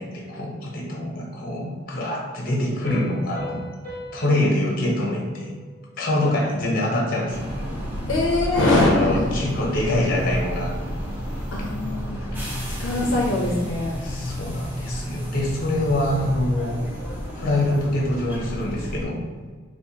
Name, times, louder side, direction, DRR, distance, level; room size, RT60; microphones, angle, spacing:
voice 1, 0.0-3.6 4.1-5.6 6.0-7.8 8.7-10.7 12.2-12.4 14.0-16.8 17.4-19.2, left 1 dB, 45° left, -2 dB, 0.8 m, -25 dB
Piano, 2.8-6.3, equal, 45° right, 1.2 m, -40 dB
sound 1, 7.3-19.1, equal, 10° right, 0.6 m, -31 dB
voice 2, 8.1-9.3 11.5-12.3 12.8-14.0, left 2 dB, 75° left, -2 dB, 0.5 m, -22 dB
4.3 x 2.3 x 2.8 m, 1.5 s
head